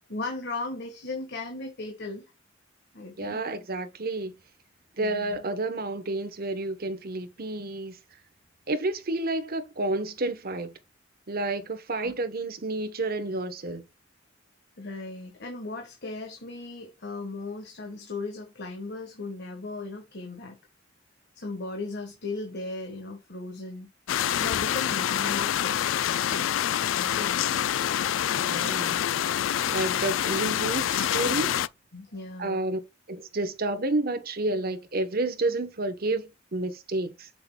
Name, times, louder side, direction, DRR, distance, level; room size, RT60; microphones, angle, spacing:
voice 1, 0.1-2.3 2.9-3.4 5.0-5.4 12.0-12.1 14.8-20.6 21.3-23.9 24.4-25.8 26.2-27.4 31.9-32.6, left 3 dB, 60° left, 1.5 m, -37 dB
voice 2, 3.2-4.3 5.0-8.0 8.7-10.7 11.3-13.8 28.4-29.0 29.7-31.6 32.4-32.8 33.1-37.3, right 2 dB, 50° right, 1.1 m, -30 dB
sound 1, 24.1-31.7, left 10 dB, 75° left, 0.3 m, -26 dB
7.0 x 6.6 x 2.3 m
head